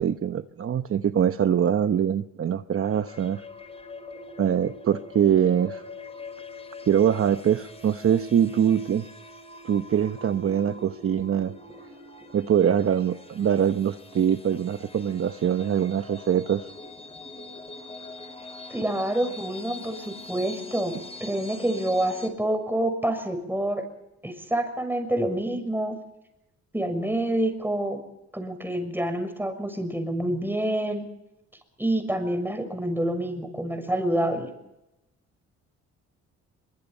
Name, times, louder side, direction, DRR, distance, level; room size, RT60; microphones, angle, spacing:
voice 1, 0.0-3.4 4.4-5.8 6.9-9.1 9.6-11.5 12.3-16.7, right 9 dB, 45° right, 9 dB, 1.0 m, -23 dB
sound 1, 2.8-22.3, left 2 dB, 20° left, 5.5 m, -43 dB
voice 2, 18.7-23.8 24.2-26.0 26.7-28.0 28.3-31.1 31.8-34.5, right 1 dB, 5° right, 7 dB, 6.5 m, -27 dB
23.5 x 23.0 x 5.6 m, 0.90 s
cardioid pair, 90°, 30 cm